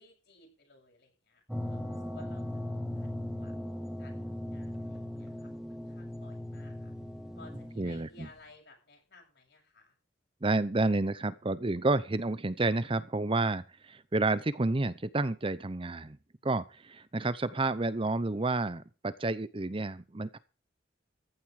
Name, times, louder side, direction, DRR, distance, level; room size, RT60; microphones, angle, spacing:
voice 1, 0.0-2.8 3.3-3.5 4.0-6.9 7.4-9.9, left 3 dB, 60° left, 1 dB, 7.7 m, -57 dB
sound 1, 1.5-8.3, left 1 dB, 5° right, 2.3 m, -38 dB
voice 2, 7.8-8.3 10.4-16.2 16.4-20.4, right 2 dB, 30° right, 16 dB, 0.7 m, -30 dB
15.0 x 11.0 x 4.9 m, 0.33 s
head